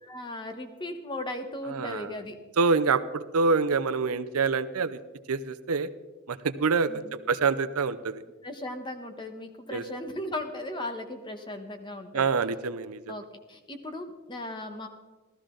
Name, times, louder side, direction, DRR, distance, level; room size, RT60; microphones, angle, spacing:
voice 1, 0.0-2.3 6.9-7.1 8.4-12.3 13.1-14.9, left 1 dB, 20° left, 6 dB, 1.1 m, -37 dB
voice 2, 1.7-2.1 2.6-5.0 5.3-5.9 6.3-8.2 9.7-9.8 12.1-13.1, right 4 dB, 80° right, 12 dB, 0.6 m, -26 dB
15.0 x 13.0 x 3.8 m, 1.2 s
head